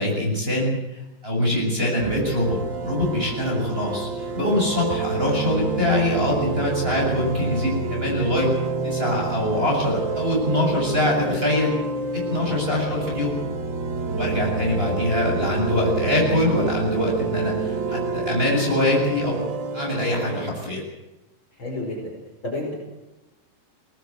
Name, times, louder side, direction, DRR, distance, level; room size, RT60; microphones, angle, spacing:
voice 1, 0.0-8.5 8.8-11.7 12.1-13.4 14.2-19.4 19.7-20.8, left 1 dB, 15° right, -2 dB, 7.3 m, -23 dB
sound 1, 2.0-20.5, right 4 dB, 90° right, 1.0 m, -28 dB
voice 2, 12.8-13.1 21.6-22.1 22.4-22.7, left 2 dB, 30° left, -1 dB, 5.6 m, -31 dB
24.0 x 19.0 x 8.0 m, 0.99 s
omnidirectional pair, 4.8 m